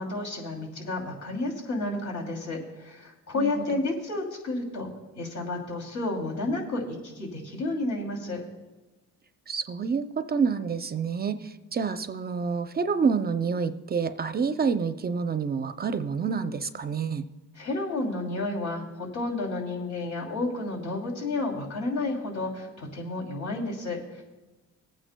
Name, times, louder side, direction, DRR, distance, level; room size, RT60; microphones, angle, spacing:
voice 1, 0.0-4.9 5.2-8.4 17.5-24.2, left 2 dB, 65° left, 0 dB, 2.9 m, -31 dB
voice 2, 9.5-17.2, right 5 dB, 30° right, 10 dB, 0.5 m, -28 dB
20.5 x 9.0 x 2.2 m, 1.2 s
cardioid pair, 90°, 30 cm